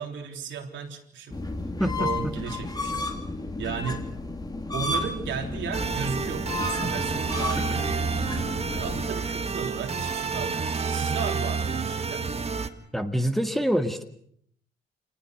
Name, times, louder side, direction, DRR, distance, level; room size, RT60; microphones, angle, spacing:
voice 1, 0.0-1.4 1.8-3.1 3.6-4.2 4.7-8.1 8.7-12.3, right 6 dB, 70° right, 4 dB, 3.6 m, -35 dB
sound 1, 1.3-9.0, left 2 dB, 20° left, 2.8 m, -32 dB
voice 2, 1.8-2.3 7.6-7.8 12.9-14.0, equal, ahead, 5 dB, 2.0 m, -26 dB
sound 2, 5.7-12.7, right 5 dB, 30° right, 1.8 m, -29 dB
27.0 x 19.5 x 6.5 m, 0.66 s
cardioid pair, 90°, 20 cm